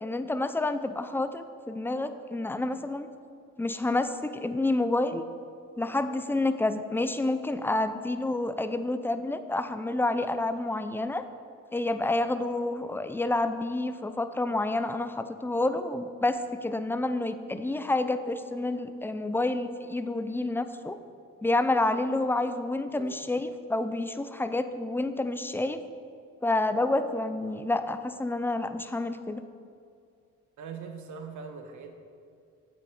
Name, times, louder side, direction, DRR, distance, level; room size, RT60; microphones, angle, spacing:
voice 1, 0.0-3.1 3.6-5.2 5.8-11.2 11.7-21.0 21.4-25.8 26.4-29.4, left 2 dB, 5° left, 10 dB, 0.5 m, -29 dB
voice 2, 30.6-32.0, right 5 dB, 75° right, 5 dB, 1.2 m, -41 dB
8.5 x 7.7 x 4.7 m, 2.4 s
cardioid pair, 90°, 30 cm